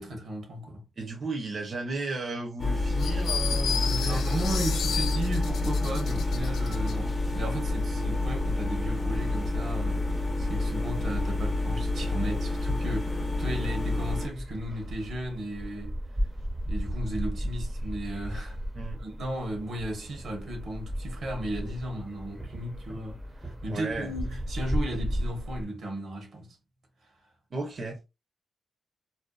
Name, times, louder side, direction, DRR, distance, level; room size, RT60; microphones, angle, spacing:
voice 1, 0.0-0.8 3.8-15.9 16.7-18.6 19.0-26.6, right 1 dB, 80° right, 0.9 m, -35 dB
voice 2, 1.0-4.4 18.8-19.0 23.7-24.1 27.5-28.1, right 3 dB, 50° right, 0.7 m, -34 dB
sound 1, 2.6-14.3, left 2 dB, 40° left, 0.7 m, -28 dB
sound 2, 3.0-7.0, left 7 dB, 85° left, 0.3 m, -33 dB
sound 3, 6.1-25.6, equal, 15° right, 0.6 m, -37 dB
2.6 x 2.2 x 2.2 m
cardioid pair, 80°, 0 cm